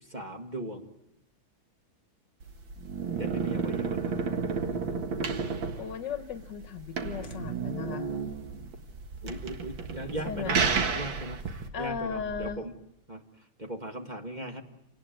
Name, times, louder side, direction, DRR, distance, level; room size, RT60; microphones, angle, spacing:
voice 1, 0.1-0.9 3.2-4.2 9.2-10.7 11.0-12.7 13.1-13.2 13.6-14.6, right 1 dB, 25° right, 3 dB, 1.7 m, -38 dB
sound 1, 2.4-11.7, right 5 dB, 75° right, 2.5 m, -31 dB
voice 2, 5.8-8.1 10.3-10.6 11.7-12.6, left 7 dB, 65° left, 10 dB, 1.7 m, -36 dB
sound 2, 7.7-12.6, right 3 dB, 40° right, 1.1 m, -45 dB
28.5 x 19.0 x 9.3 m, 0.89 s
omnidirectional pair, 2.2 m